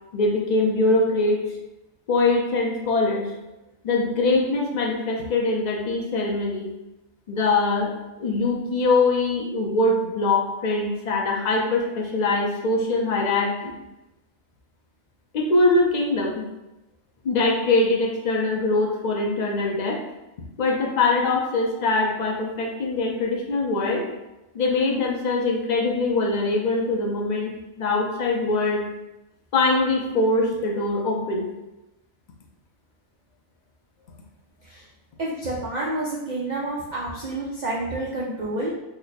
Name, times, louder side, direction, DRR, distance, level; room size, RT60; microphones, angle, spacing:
voice 1, 0.1-1.4 2.1-3.3 3.8-6.7 7.3-7.9 8.2-13.7 15.3-16.4 17.2-20.0 20.6-24.1 24.5-28.8 29.5-31.5, left 2 dB, 70° left, -1 dB, 0.4 m, -23 dB
voice 2, 35.2-38.7, right 2 dB, 55° right, -4 dB, 0.5 m, -29 dB
3.1 x 2.1 x 4.0 m, 0.97 s
omnidirectional pair, 1.4 m